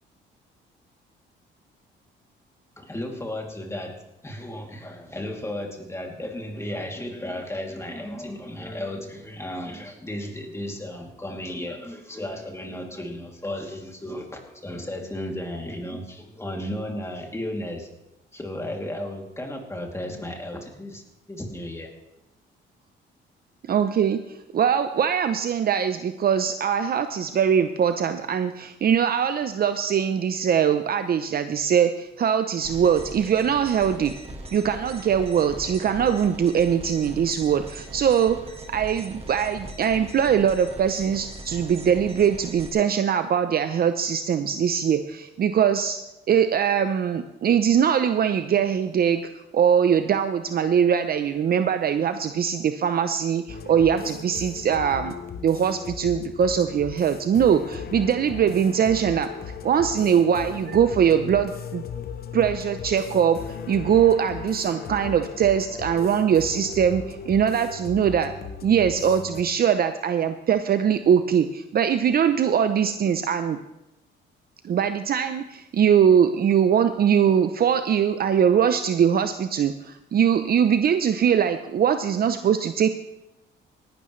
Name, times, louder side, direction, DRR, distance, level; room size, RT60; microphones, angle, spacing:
voice 1, 2.8-4.0 4.2-17.9 18.3-21.0 21.3-21.9, left 1 dB, 15° left, 1 dB, 2.7 m, -34 dB
voice 2, 23.7-34.1 34.5-38.4 38.7-46.0 46.3-49.2 49.5-55.1 55.4-59.3 59.6-61.8 62.3-68.3 68.6-73.6 74.6-82.9, right 8 dB, 50° right, 9 dB, 0.6 m, -22 dB
sound 1, 32.6-42.7, right 2 dB, 30° right, 1.9 m, -40 dB
sound 2, 53.5-69.4, left 6 dB, 50° left, 1.0 m, -37 dB
18.0 x 11.5 x 3.2 m, 0.92 s
cardioid pair, 90°, 20 cm